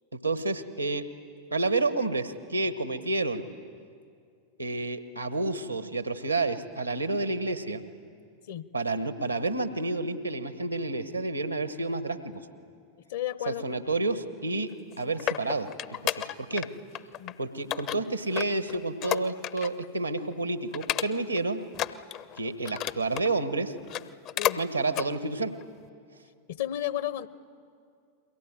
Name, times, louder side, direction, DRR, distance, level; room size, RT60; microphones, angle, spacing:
voice 1, 0.1-1.0 1.5-3.4 4.6-7.8 8.7-12.4 13.5-14.7 15.0-15.7 16.0-16.7 17.4-21.6 22.4-23.7 24.6-25.5, right 2 dB, 85° right, 11 dB, 1.4 m, -30 dB
voice 2, 13.1-13.7 17.2-17.4 24.4-24.6 26.5-27.3, left 12 dB, 55° left, 16 dB, 1.0 m, -33 dB
sound 1, 14.7-16.7 16.9-17.3 17.7-19.9 20.2-20.3 20.7-21.4 21.7-23.3 23.8-24.6 24.9-25.1 25.6-25.7, left 11 dB, 40° left, 0.7 m, -32 dB
30.0 x 22.5 x 7.7 m, 2.3 s
figure-of-eight pair, 90°, 0 cm